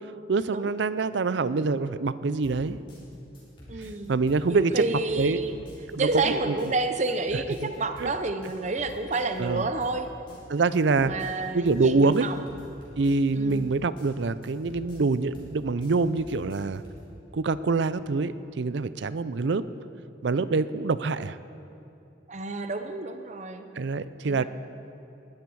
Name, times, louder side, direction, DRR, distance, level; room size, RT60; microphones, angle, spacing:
voice 1, 0.3-2.8 4.1-4.8 5.2-5.4 5.9-6.1 6.5-6.6 8.0-8.1 9.4-9.6 10.5-11.1 11.5-12.3 13.0-16.8 17.3-19.7 20.2-21.4 23.8-24.4, right 3 dB, 65° right, 15 dB, 0.5 m, -25 dB
sound 1, 2.4-17.1, equal, 25° left, 4.3 m, -47 dB
voice 2, 3.7-4.1 4.5-5.6 6.0-10.1 11.0-12.5 13.3-13.7 22.3-23.7 24.2-24.4, right 3 dB, 35° right, 8 dB, 0.7 m, -29 dB
20.0 x 13.0 x 4.7 m, 2.7 s
head